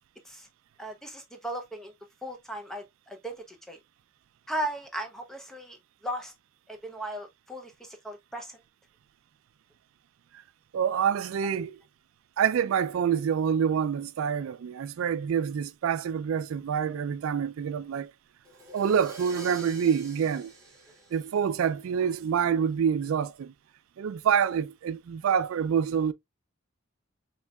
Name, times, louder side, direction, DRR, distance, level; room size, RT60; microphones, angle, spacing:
voice 1, 0.8-1.9 2.2-3.8 4.5-6.3 6.7-8.6, right 1 dB, ahead, 0.7 m, -37 dB
voice 2, 10.7-11.7 12.4-18.1 18.7-20.5 21.1-23.5 24.0-26.1, right 7 dB, 80° right, 0.3 m, -27 dB
Crash cymbal, 18.4-22.2, right 1 dB, 15° right, 1.5 m, -47 dB
4.5 x 3.3 x 2.2 m
head